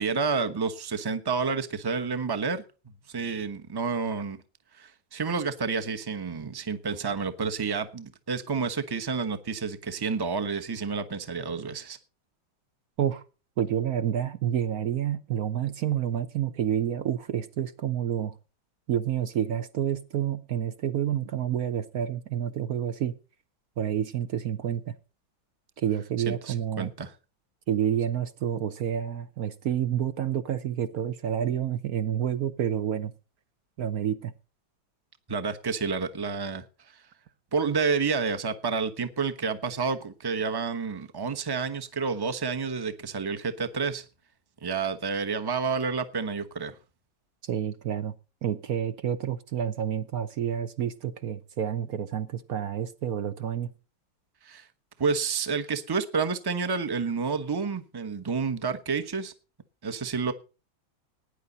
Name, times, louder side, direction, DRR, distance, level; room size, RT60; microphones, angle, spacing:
voice 1, 0.0-2.6 3.1-4.4 4.7-12.0 26.3-27.1 35.3-36.6 37.5-44.0 44.6-46.8 54.4-54.7 55.0-59.3 59.8-60.3, right 5 dB, 20° right, 0.6 m, -29 dB
voice 2, 13.6-18.3 18.9-23.1 23.8-24.9 25.8-26.9 27.7-33.1 33.8-34.3 47.4-48.1 48.4-53.7, right 9 dB, 60° right, 1.1 m, -29 dB
18.0 x 10.0 x 4.0 m
omnidirectional pair, 2.2 m